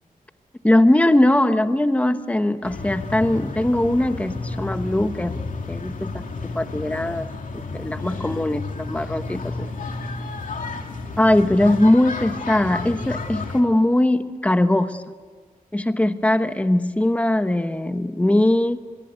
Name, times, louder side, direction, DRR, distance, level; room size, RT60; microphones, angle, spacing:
voice 1, 0.6-5.4 5.7-6.2 6.5-7.3 7.5-9.7 11.2-15.0 15.7-18.8, left 1 dB, 10° left, 9 dB, 1.1 m, -20 dB
sound 1, 2.6-13.6, left 3 dB, 65° left, 2.6 m, -32 dB
26.0 x 22.0 x 9.4 m, 1.5 s
wide cardioid pair, 180°, 15 cm